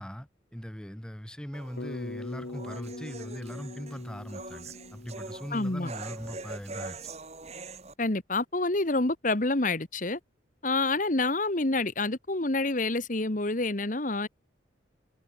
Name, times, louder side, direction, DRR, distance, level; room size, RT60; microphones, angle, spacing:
voice 1, 0.0-7.0, equal, 5° left, 1.0 m, -40 dB
sound 1, 1.5-7.9, right 3 dB, 35° right, 3.3 m, -43 dB
Bass guitar, 1.8-6.1, left 2 dB, 70° left, 0.9 m, -42 dB
voice 2, 5.5-5.9 8.0-10.2 10.6-14.3, left 2 dB, 45° left, 1.5 m, -28 dB
head